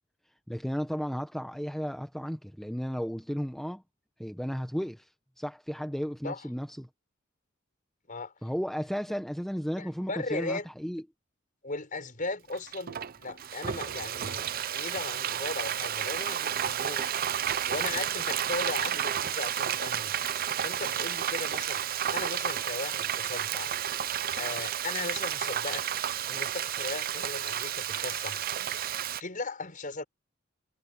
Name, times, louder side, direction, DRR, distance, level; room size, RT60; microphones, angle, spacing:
voice 1, 0.5-3.8 4.2-5.1 5.4-6.9 8.4-11.0, equal, ahead, 0.9 m, -34 dB
voice 2, 9.8-10.7 11.6-17.1 17.6-20.1 20.6-21.8 22.1-23.7 24.4-25.8 26.3-30.0, left 3 dB, 40° left, 5.7 m, -37 dB
Frying (food), 12.5-29.2, right 10 dB, 45° right, 0.5 m, -31 dB
head